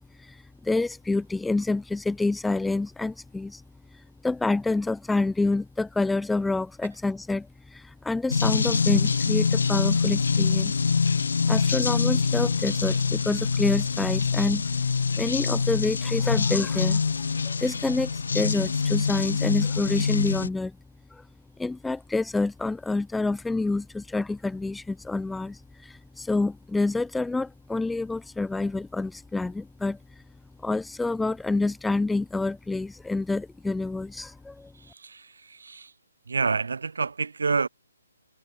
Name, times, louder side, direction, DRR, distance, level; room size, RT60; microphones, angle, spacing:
voice 1, 0.0-3.6 4.2-10.8 11.5-14.6 15.2-17.0 17.4-20.8 21.1-21.2 21.6-30.0 30.6-34.7, left 3 dB, ahead, 0.6 m, -28 dB
sound 1, 8.3-20.5, left 5 dB, 65° left, 2.9 m, -25 dB
voice 2, 34.7-35.9 36.3-37.7, right 4 dB, 85° right, 6.2 m, -28 dB
hypercardioid pair, 180°, 0 cm